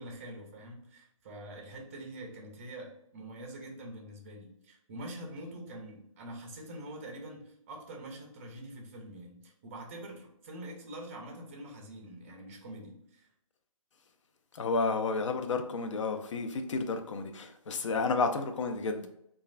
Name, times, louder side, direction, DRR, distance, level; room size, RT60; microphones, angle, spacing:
voice 1, 0.0-13.3, right 1 dB, 25° right, 0.5 m, -45 dB
voice 2, 14.5-19.1, left 4 dB, 60° left, 0.5 m, -31 dB
3.0 x 2.3 x 2.4 m
hypercardioid pair, 160°, 18 cm